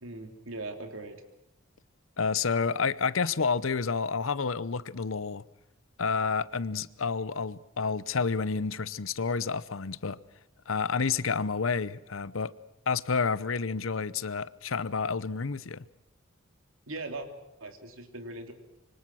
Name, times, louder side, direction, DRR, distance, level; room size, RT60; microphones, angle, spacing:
voice 1, 0.0-1.2 16.9-17.3 17.6-18.5, right 2 dB, 90° right, 3.2 m, -39 dB
voice 2, 2.2-5.4 6.0-10.2 10.7-12.5 12.9-15.8, left 5 dB, 75° left, 0.8 m, -29 dB
26.5 x 24.0 x 6.3 m
head